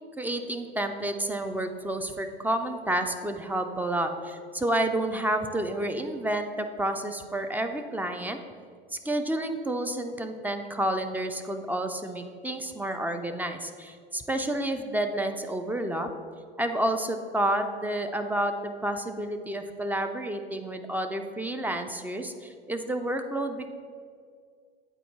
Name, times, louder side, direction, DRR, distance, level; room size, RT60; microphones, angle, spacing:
voice 1, 0.2-8.4 8.9-16.1 16.6-23.7, right 1 dB, 5° right, 6 dB, 0.3 m, -30 dB
8.8 x 4.4 x 3.1 m, 2.1 s
figure-of-eight pair, 70°, 30 cm